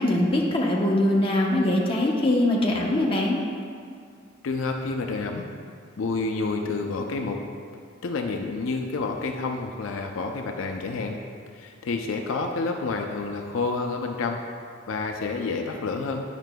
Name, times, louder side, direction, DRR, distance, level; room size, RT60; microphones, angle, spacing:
voice 1, 0.0-3.4, left 1 dB, 25° left, -3 dB, 0.8 m, -22 dB
voice 2, 4.4-5.5 6.0-7.4 8.0-11.2 11.5-14.4 14.9-16.2, left 3 dB, 75° left, 3 dB, 0.4 m, -29 dB
9.1 x 5.8 x 2.2 m, 2.2 s
head